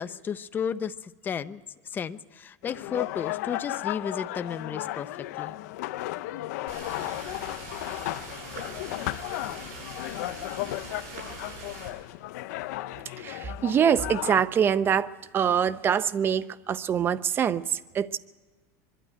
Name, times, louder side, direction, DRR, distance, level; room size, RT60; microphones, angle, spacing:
voice 1, 0.0-1.6 1.9-5.1 5.4-5.5, left 7 dB, 20° left, 12 dB, 0.6 m, -33 dB
sound 1, 2.6-14.4, left 16 dB, 75° left, 0.6 m, -35 dB
sound 2, 6.7-11.9, right 3 dB, 65° right, 7.5 m, -42 dB
voice 2, 13.2-18.2, right 8 dB, 25° right, 15 dB, 0.6 m, -25 dB
23.5 x 12.0 x 9.1 m, 1.3 s
supercardioid pair, 145°, 9 cm